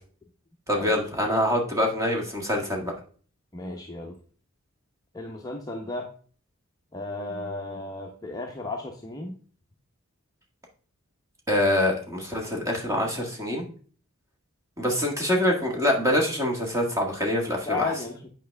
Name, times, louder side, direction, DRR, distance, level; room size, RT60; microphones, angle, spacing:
voice 1, 0.7-2.9 11.5-13.6 14.8-17.9, left 1 dB, 15° right, 0 dB, 1.7 m, -25 dB
voice 2, 3.5-4.2 5.1-6.1 6.9-9.4 17.7-18.3, left 3 dB, 15° left, 0 dB, 0.8 m, -34 dB
9.1 x 5.2 x 3.4 m, 0.42 s
head